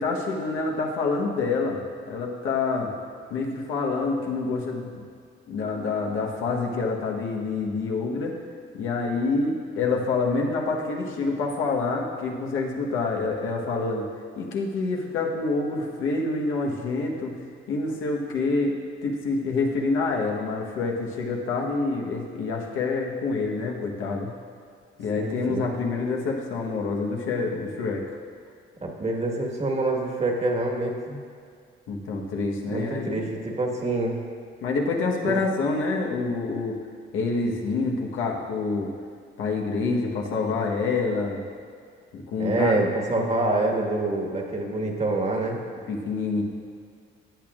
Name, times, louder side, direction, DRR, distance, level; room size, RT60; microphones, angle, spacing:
voice 1, 0.0-1.8 2.1-2.9 3.3-5.0 5.5-8.4 8.7-14.1 14.4-17.4 17.7-18.7 19.0-24.3 25.0-28.2 31.9-33.3 34.6-36.8 37.1-38.9 39.4-41.4 42.1-42.8 43.2-43.3 45.9-46.4, left 3 dB, 90° left, 0 dB, 1.2 m, -27 dB
voice 2, 25.2-25.7 28.8-31.2 32.7-34.2 35.2-35.3 42.4-45.6, right 2 dB, 35° right, 0 dB, 1.6 m, -26 dB
15.0 x 8.8 x 2.5 m, 2.2 s
cardioid pair, 90°, 20 cm